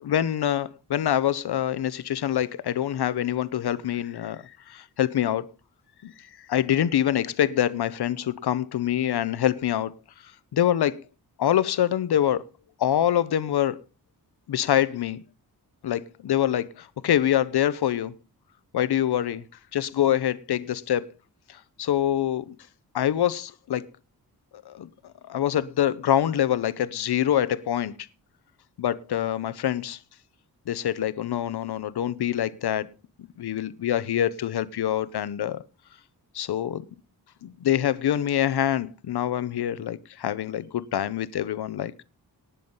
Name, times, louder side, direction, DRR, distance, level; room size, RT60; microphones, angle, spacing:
voice 1, 0.0-5.5 6.0-6.1 6.5-9.9 10.5-11.0 11.4-12.4 12.8-13.8 14.5-15.2 15.8-18.1 18.7-19.4 19.7-21.1 21.8-22.5 22.9-23.9 24.7-24.9 25.3-27.9 28.8-30.0 30.7-32.9 33.4-35.6 36.3-36.8 37.4-41.9, left 11 dB, 90° left, 0.9 m, -25 dB
19.0 x 7.1 x 5.6 m
wide cardioid pair, 100°, 38 cm